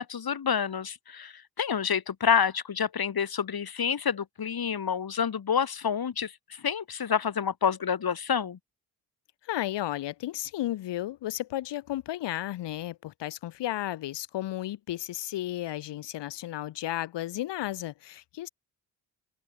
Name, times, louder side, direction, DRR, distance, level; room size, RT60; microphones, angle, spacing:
voice 1, 0.0-8.6, left 7 dB, 60° left, 7.1 m, -28 dB
voice 2, 9.4-18.5, left 14 dB, 85° left, 3.2 m, -33 dB
open air
supercardioid pair, 55°, 41 cm